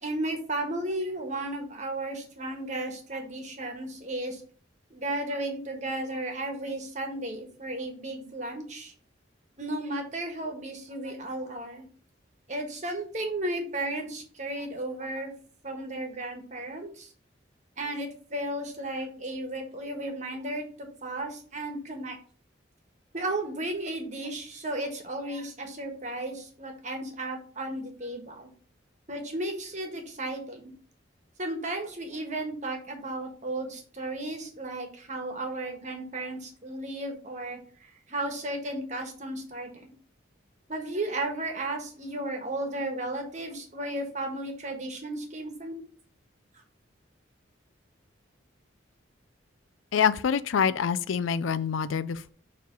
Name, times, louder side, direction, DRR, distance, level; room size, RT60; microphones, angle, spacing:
voice 1, 0.0-4.4 4.9-8.9 9.6-11.8 12.5-15.3 15.6-17.1 17.8-22.2 23.1-28.5 29.1-30.7 31.4-37.6 38.1-39.9 40.7-45.8, right 1 dB, 35° right, 1.3 m, -34 dB
voice 2, 49.9-52.3, left 7 dB, 85° left, 0.4 m, -26 dB
6.9 x 3.2 x 5.1 m
head